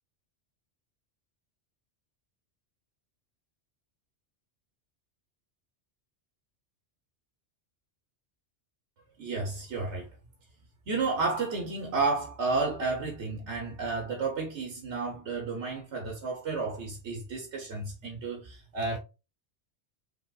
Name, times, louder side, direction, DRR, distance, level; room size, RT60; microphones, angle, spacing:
voice 1, 9.2-10.1 10.9-19.0, right 3 dB, 80° right, 1.3 m, -32 dB
5.1 x 3.5 x 2.3 m
omnidirectional pair, 1.2 m